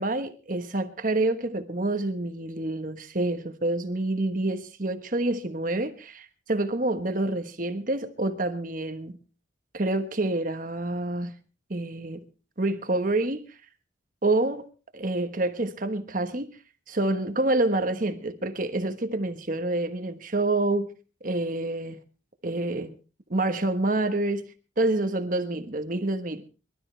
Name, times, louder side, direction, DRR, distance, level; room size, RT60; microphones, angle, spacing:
voice 1, 0.0-9.1 9.7-11.4 11.7-12.2 12.6-13.4 14.2-14.6 14.9-16.5 16.9-20.9 21.2-22.0 22.4-22.9 23.3-24.4 24.8-26.4, right 2 dB, 45° right, 1.2 m, -27 dB
24.0 x 12.5 x 3.3 m
head